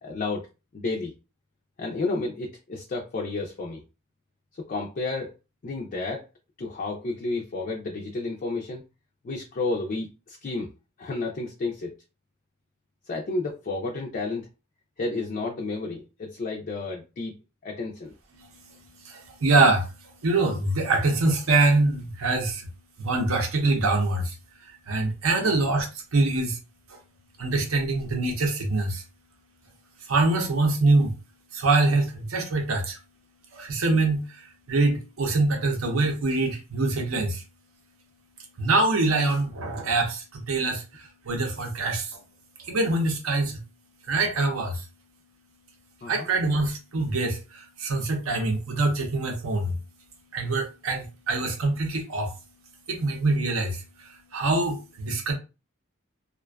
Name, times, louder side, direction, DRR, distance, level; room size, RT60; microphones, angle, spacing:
voice 1, 0.0-0.5 0.7-1.1 1.8-3.8 4.5-5.3 5.6-6.2 6.6-8.8 9.2-10.7 11.0-11.9 13.1-14.5 15.0-17.3 17.6-18.1 25.4-25.7 46.0-46.3, left 3 dB, 40° left, 0.3 m, -31 dB
voice 2, 18.3-22.7 23.0-24.4 24.9-26.6 27.4-29.0 30.0-31.1 31.5-33.0 33.5-37.4 38.6-42.2 42.6-43.6 44.1-44.9 46.1-49.8 50.3-52.4 52.9-55.3, right 2 dB, 75° right, 0.7 m, -24 dB
2.5 x 2.2 x 2.2 m
head